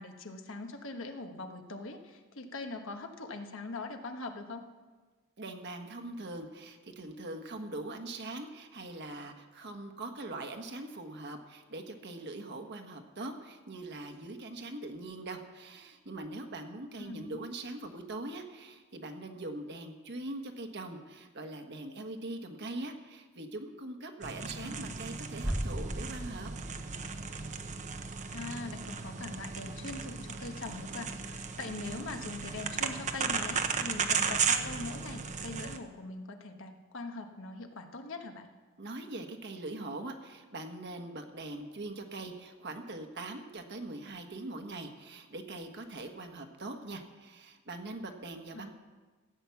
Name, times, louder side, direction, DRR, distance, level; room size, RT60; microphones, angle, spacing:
voice 1, 0.0-4.6 17.0-17.4 24.6-24.9 28.3-38.5 48.5-48.7, left 3 dB, 60° left, 5 dB, 1.3 m, -42 dB
voice 2, 5.4-26.5 38.8-48.7, right 2 dB, 50° right, 5 dB, 1.4 m, -42 dB
sound 1, 24.2-35.8, right 6 dB, 35° right, 0.8 m, -35 dB
sound 2, 25.4-31.2 31.4-31.5, equal, 5° right, 0.4 m, -41 dB
15.0 x 9.0 x 7.1 m, 1.3 s
head